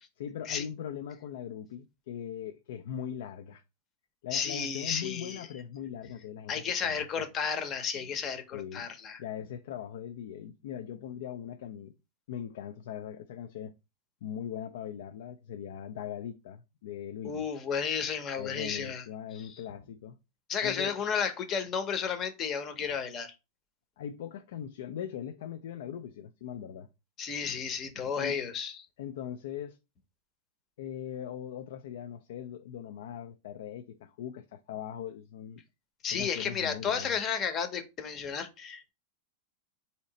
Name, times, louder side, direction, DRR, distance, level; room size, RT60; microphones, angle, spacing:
voice 1, 0.2-3.6 4.2-7.2 8.5-8.9 9.2-11.9 12.3-13.7 14.2-17.5 18.4-20.2 20.6-20.9 24.0-26.9 28.2-28.4 29.0-29.8 30.8-35.6 36.1-37.2, left 9 dB, 75° left, 0.3 m, -40 dB
voice 2, 4.3-5.5 6.5-9.2 17.2-19.0 19.3-19.5 20.5-23.3 27.2-28.9 36.0-38.9, left 6 dB, 30° left, 0.7 m, -33 dB
4.1 x 2.8 x 3.9 m
supercardioid pair, 150°, 0 cm